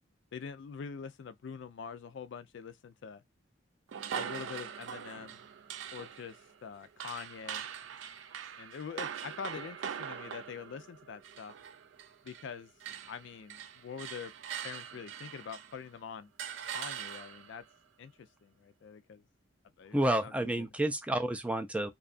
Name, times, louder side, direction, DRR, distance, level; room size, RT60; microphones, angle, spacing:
voice 1, 0.3-3.2 4.1-5.4 5.9-7.7 8.6-11.5 12.2-12.7 13.1-14.3 14.6-16.3 16.7-17.6 18.0-19.2 19.8-20.0 20.2-20.3 20.6-20.7, left 6 dB, 70° left, 0.4 m, -44 dB
sound 1, 3.9-12.5 12.8-15.9 16.4-17.6, right 8 dB, 75° right, 0.4 m, -42 dB
voice 2, 19.9-21.9, right 1 dB, 5° right, 0.4 m, -30 dB
2.6 x 2.3 x 2.4 m
head